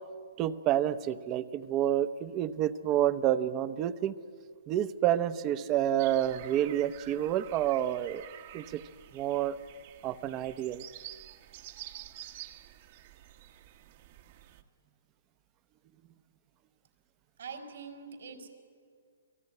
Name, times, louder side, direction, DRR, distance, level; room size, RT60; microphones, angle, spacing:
voice 1, 0.4-4.1 4.7-8.3 8.5-8.8 9.1-9.6 10.0-10.8, right 11 dB, 25° right, 14 dB, 0.8 m, -29 dB
sound 1, 6.0-14.6, right 13 dB, 45° right, 1.3 m, -49 dB
voice 2, 17.4-18.5, right 5 dB, 75° right, 5 dB, 4.8 m, -44 dB
28.5 x 19.5 x 9.8 m, 2.1 s
hypercardioid pair, 155°, 0 cm